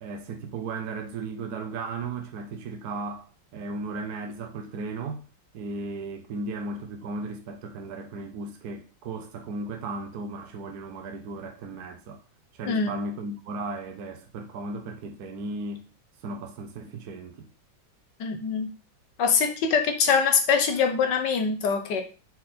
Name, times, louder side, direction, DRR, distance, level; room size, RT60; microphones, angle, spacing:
voice 1, 0.0-5.2 5.5-12.2 12.5-15.8 16.2-17.5, right 3 dB, 60° right, 1.2 m, -35 dB
voice 2, 18.2-18.7 19.2-22.0, left 6 dB, 65° left, 1.5 m, -23 dB
6.5 x 3.9 x 4.3 m
omnidirectional pair, 2.2 m